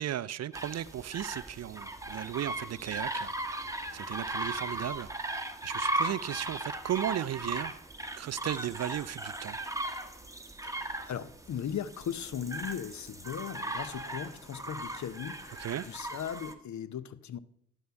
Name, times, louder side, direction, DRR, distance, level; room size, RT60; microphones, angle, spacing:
voice 1, 0.0-7.8 8.2-9.6 15.6-15.9, right 11 dB, 45° right, 0.5 m, -36 dB
sound 1, 0.5-16.5, right 1 dB, 10° right, 1.3 m, -37 dB
voice 2, 10.6-17.4, left 8 dB, 50° left, 0.8 m, -38 dB
12.5 x 5.5 x 5.7 m
hypercardioid pair, 45°, 36 cm